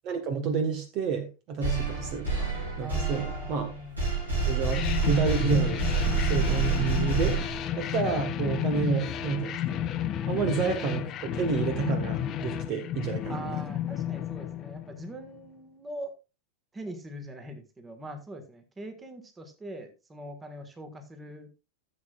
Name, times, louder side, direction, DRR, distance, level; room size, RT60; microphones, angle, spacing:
voice 1, 0.0-3.7 4.5-5.9 6.2-7.4 7.8-9.8 10.3-13.6, right 6 dB, 40° right, 1.4 m, -30 dB
sound 1, 1.6-7.9, right 4 dB, 80° right, 7.0 m, -28 dB
voice 2, 2.8-4.1 10.4-10.5 13.3-16.1 16.7-21.5, right 1 dB, 15° right, 1.7 m, -42 dB
sound 2, 4.7-15.2, left 10 dB, 30° left, 0.8 m, -32 dB
15.0 x 7.7 x 2.4 m
figure-of-eight pair, 90°, 0 cm